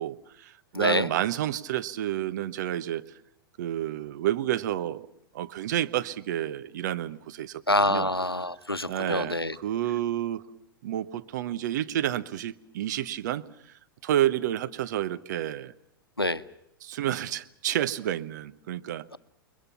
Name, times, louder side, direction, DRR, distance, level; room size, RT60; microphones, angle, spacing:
voice 1, 0.0-3.0 3.6-5.1 5.3-8.1 8.9-10.4 10.8-13.4 14.0-15.7 16.8-19.0, right 12 dB, 50° right, 12 dB, 1.1 m, -30 dB
voice 2, 0.7-1.1 7.7-9.6 16.2-16.4, left 2 dB, 90° left, 14 dB, 0.9 m, -26 dB
29.0 x 22.0 x 5.8 m, 0.76 s
figure-of-eight pair, 100°, 12 cm